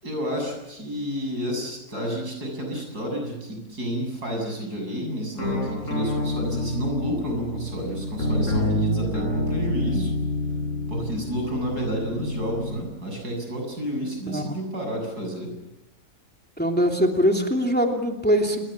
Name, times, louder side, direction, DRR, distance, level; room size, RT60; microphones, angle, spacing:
voice 1, 0.0-10.1 10.9-15.5, equal, 90° right, 3 dB, 7.9 m, -30 dB
sound 1, 5.4-12.8, left 1 dB, 50° left, 6.6 m, -28 dB
voice 2, 16.6-18.6, equal, 5° left, 2 dB, 2.8 m, -22 dB
28.0 x 21.5 x 7.4 m, 0.96 s
omnidirectional pair, 1.6 m